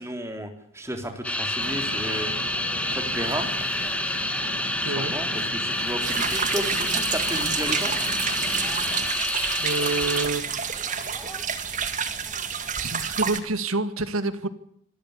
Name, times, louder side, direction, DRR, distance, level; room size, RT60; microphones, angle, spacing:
voice 1, 0.0-2.3 2.9-3.5 4.8-7.9, equal, 15° right, 5 dB, 3.5 m, -33 dB
sound 1, 1.2-10.5 10.8-11.4 12.1-12.4, left 1 dB, 5° left, 1.8 m, -28 dB
sound 2, 1.6-9.1, right 2 dB, 60° right, 2.1 m, -38 dB
voice 2, 4.8-5.1 9.6-10.9 12.8-14.5, right 3 dB, 85° right, 12 dB, 2.0 m, -28 dB
sound 3, 6.0-13.4, right 7 dB, 35° right, 2.1 m, -29 dB
25.5 x 13.5 x 9.9 m, 0.67 s
head